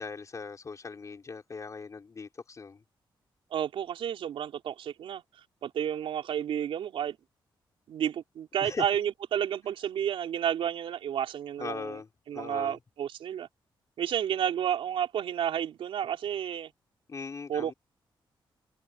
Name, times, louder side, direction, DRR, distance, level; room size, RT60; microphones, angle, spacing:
voice 1, 0.0-2.8 8.6-8.9 11.6-12.1 12.3-12.8 17.1-17.7, left 4 dB, 35° left, 4.5 m, -39 dB
voice 2, 3.5-5.2 5.6-7.2 7.9-12.0 12.3-13.5 14.0-16.7 17.5-17.7, right 9 dB, 90° right, 3.8 m, -31 dB
cardioid pair, 115°, 9 cm